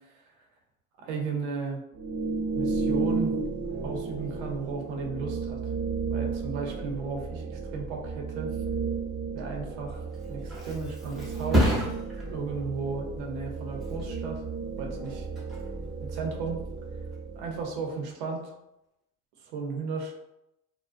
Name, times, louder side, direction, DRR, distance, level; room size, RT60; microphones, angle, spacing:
voice 1, 1.0-1.8 2.6-3.3 3.8-5.6 6.1-8.6 9.3-11.8 12.3-14.4 14.8-15.3 16.0-16.6 17.3-18.4 19.4-20.2, right 4 dB, 80° right, 1 dB, 0.7 m, -34 dB
sound 1, 1.9-17.7, right 4 dB, 35° right, 0.7 m, -33 dB
Thump thud, 9.9-17.4 17.8-18.2, right 1 dB, ahead, 0.6 m, -32 dB
2.5 x 2.1 x 2.4 m, 0.88 s
supercardioid pair, 105°, 32 cm